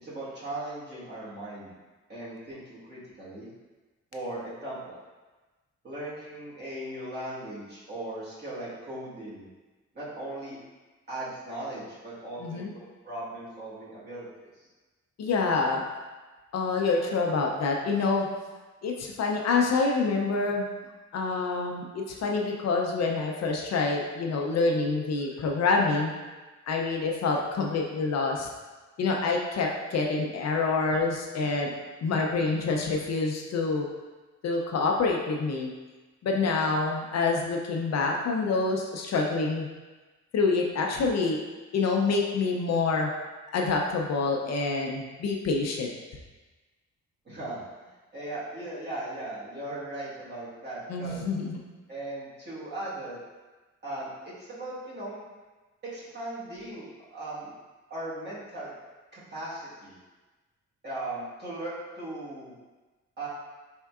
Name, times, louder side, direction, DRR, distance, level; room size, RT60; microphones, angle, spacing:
voice 1, 0.0-1.7 2.1-3.5 4.1-5.0 5.8-9.5 9.9-10.6 11.1-14.3 14.5-14.7 47.2-51.2 51.9-53.2 53.8-55.2 55.8-57.5 57.9-58.7 59.1-60.0 60.8-62.5 63.2-63.3, right 1 dB, 35° right, -9 dB, 1.3 m, -38 dB
voice 2, 12.4-12.7 15.2-15.8 16.5-18.3 18.8-20.7 21.1-26.1 26.7-28.5 29.0-31.7 32.0-33.9 34.4-35.7 36.2-39.7 40.3-41.4 41.7-43.1 43.5-45.9 50.9-51.6, left 4 dB, 60° left, 0 dB, 0.5 m, -27 dB
4.3 x 3.5 x 2.3 m, 1.2 s
wide cardioid pair, 150°, 30 cm